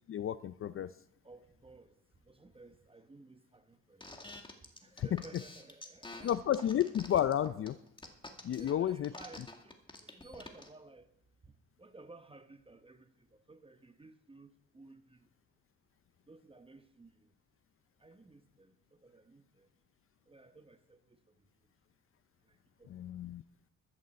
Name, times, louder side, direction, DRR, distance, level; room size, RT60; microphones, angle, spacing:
voice 1, 0.1-0.9 5.0-5.2 6.2-7.8 8.4-9.1 22.9-23.4, left 10 dB, 45° left, 0.5 m, -32 dB
voice 2, 1.2-1.9 2.3-4.1 4.8-6.7 8.5-11.1 11.4-11.5 11.8-15.2 16.3-17.3 18.0-19.7 20.3-21.2 22.8-22.9, right 2 dB, 20° right, 0.9 m, -56 dB
sound 1, 4.0-10.7, left 2 dB, 15° left, 2.1 m, -48 dB
13.5 x 6.7 x 7.6 m
cardioid pair, 90°, 30 cm